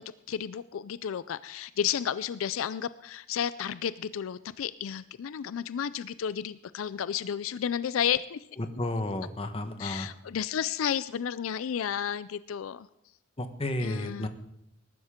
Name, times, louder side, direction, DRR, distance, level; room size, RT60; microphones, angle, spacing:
voice 1, 0.0-8.4 9.8-12.9 13.8-14.3, left 8 dB, 80° left, 16 dB, 0.4 m, -32 dB
voice 2, 8.6-10.1 13.4-14.3, left 1 dB, 30° left, 8 dB, 1.1 m, -32 dB
20.5 x 12.0 x 3.7 m, 0.79 s
head